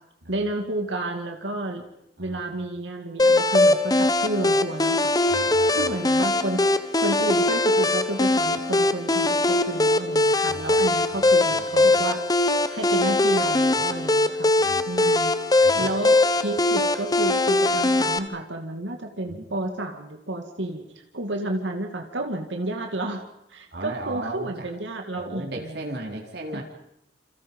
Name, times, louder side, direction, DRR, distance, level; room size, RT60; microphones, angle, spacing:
voice 1, 0.3-1.8 2.2-5.1 5.7-6.7 7.0-12.2 12.7-15.3 15.6-20.9 21.1-25.8 26.5-26.6, right 1 dB, 85° right, 4 dB, 2.3 m, -31 dB
sound 1, 3.2-18.2, left 2 dB, 20° left, 1.1 m, -21 dB
voice 2, 5.3-5.9 10.5-11.0 11.5-12.0 14.6-14.8 15.6-15.9 19.3-19.4 23.7-24.7 25.2-26.6, right 1 dB, 60° right, 0 dB, 4.1 m, -36 dB
28.0 x 28.0 x 5.5 m, 0.81 s
head